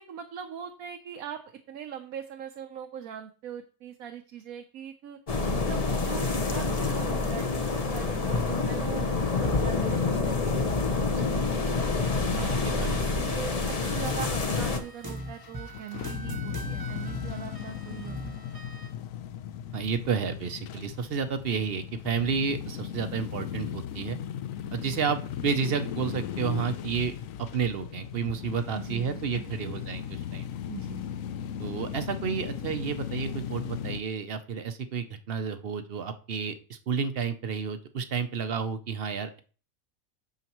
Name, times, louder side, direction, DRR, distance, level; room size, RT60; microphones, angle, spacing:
voice 1, 0.0-5.2 5.7-11.9 12.7-18.3 28.7-29.8 30.7-31.1, right 9 dB, 80° right, 5 dB, 1.2 m, -42 dB
sound 1, 5.3-14.8, left 3 dB, 30° left, 0.8 m, -27 dB
voice 2, 12.3-13.0 19.7-24.2 24.7-27.1 27.5-30.5 31.6-39.4, right 6 dB, 55° right, 9 dB, 0.8 m, -31 dB
sound 2, 13.8-18.9, right 1 dB, 15° right, 1.0 m, -40 dB
sound 3, 15.0-34.0, left 9 dB, 75° left, 1.0 m, -37 dB
9.3 x 6.7 x 3.0 m, 0.39 s
omnidirectional pair, 1.5 m